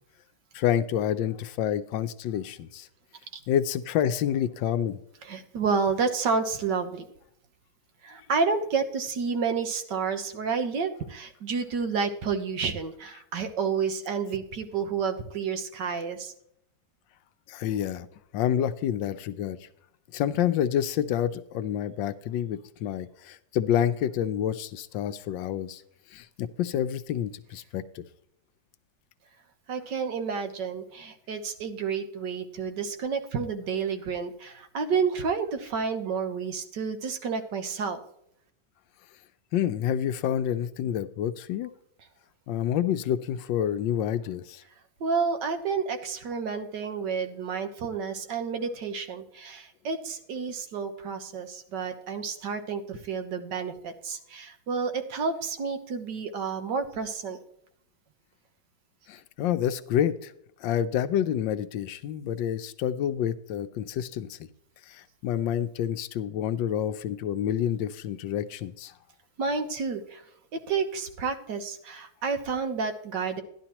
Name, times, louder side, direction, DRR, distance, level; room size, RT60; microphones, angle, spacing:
voice 1, 0.5-2.9 3.5-5.0 17.5-18.1 18.3-19.6 20.1-25.8 26.1-28.0 39.5-41.7 42.5-44.6 59.1-60.3 60.6-64.4 64.9-68.9, left 10 dB, 75° left, 12 dB, 1.3 m, -28 dB
voice 2, 5.2-7.0 8.0-16.3 29.7-38.0 45.0-57.4 69.4-70.2 70.5-73.4, right 5 dB, 70° right, 7 dB, 1.6 m, -30 dB
13.0 x 11.0 x 2.9 m, 0.71 s
omnidirectional pair, 2.1 m